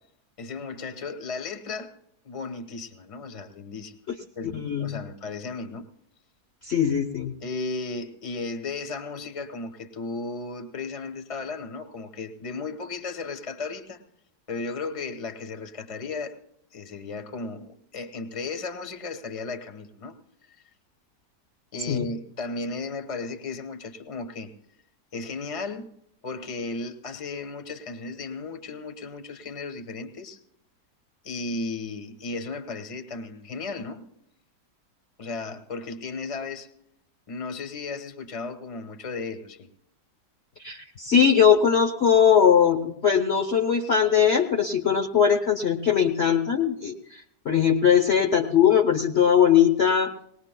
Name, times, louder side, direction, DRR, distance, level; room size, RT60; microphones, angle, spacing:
voice 1, 0.4-1.9 2.2-4.0 4.3-5.8 7.4-14.0 14.5-16.4 16.7-20.1 21.7-24.5 25.1-25.9 26.2-30.4 31.2-34.0 35.2-36.7 37.3-39.7, left 3 dB, 25° left, 7 dB, 1.0 m, -35 dB
voice 2, 4.5-4.9 6.7-7.3 21.9-22.0 40.6-50.1, left 8 dB, 50° left, 2 dB, 1.0 m, -20 dB
20.0 x 19.5 x 2.2 m, 0.76 s
omnidirectional pair, 1.8 m